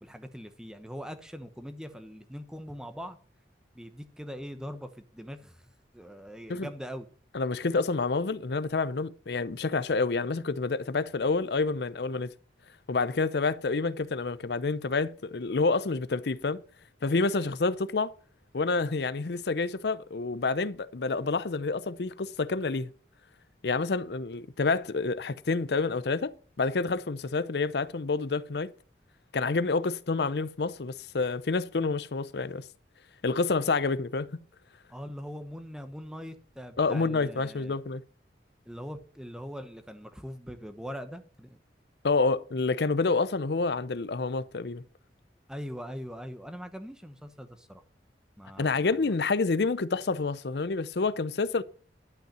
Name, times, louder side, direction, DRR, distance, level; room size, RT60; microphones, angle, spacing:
voice 1, 0.0-3.2 3.7-5.6 5.9-7.1 34.9-37.8 38.7-41.6 45.5-47.8 48.4-49.1, equal, 5° right, 1.0 m, -42 dB
voice 2, 7.3-12.3 12.9-16.6 17.0-18.1 18.5-22.9 23.6-28.7 29.3-32.7 33.2-34.4 36.8-38.0 42.0-44.8 48.6-51.6, left 3 dB, 70° left, 0.6 m, -28 dB
12.0 x 5.6 x 7.4 m
head